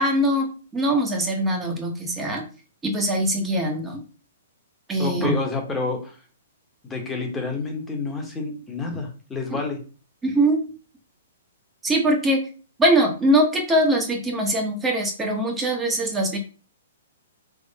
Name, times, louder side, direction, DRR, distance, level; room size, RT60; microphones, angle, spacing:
voice 1, 0.0-2.4 2.8-4.0 4.9-5.3 10.2-10.6 11.8-12.4 12.8-16.4, right 1 dB, 10° right, 1 dB, 0.9 m, -22 dB
voice 2, 5.0-6.2 6.8-9.8, left 3 dB, 10° left, 2 dB, 1.0 m, -29 dB
3.6 x 3.0 x 4.0 m, 0.37 s
hypercardioid pair, 155°, 0 cm